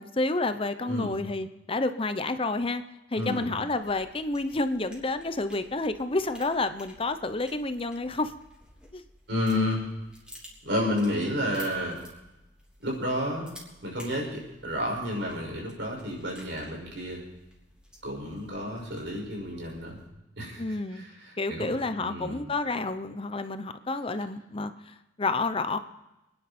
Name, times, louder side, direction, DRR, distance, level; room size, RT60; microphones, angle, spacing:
voice 1, 0.0-2.8 3.1-8.3 8.9-9.0 20.6-21.1 21.4-25.8, left 2 dB, 30° left, 10 dB, 0.8 m, -29 dB
voice 2, 3.1-3.5 9.3-9.8 10.6-12.0 12.8-13.5 13.8-17.2 18.0-20.0 20.4-21.7 22.0-22.4, left 1 dB, 85° right, -1 dB, 5.9 m, -31 dB
sound 1, 3.7-20.1, equal, 5° right, 3.4 m, -53 dB
27.0 x 10.0 x 4.4 m, 0.96 s
head